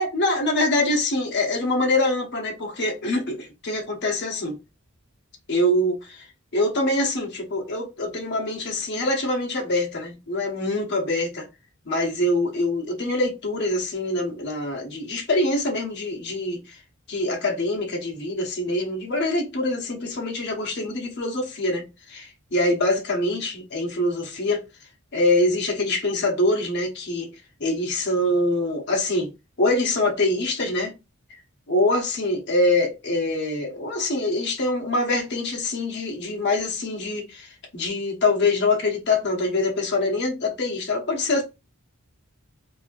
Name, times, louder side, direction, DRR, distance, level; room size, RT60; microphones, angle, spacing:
voice 1, 0.0-4.6 5.5-6.3 6.5-11.5 11.9-16.8 17.1-24.6 25.1-27.3 27.6-29.3 29.6-30.9 31.3-31.4 31.7-41.4, left 2 dB, 50° left, 0.9 m, -24 dB
3.1 x 2.7 x 2.5 m
head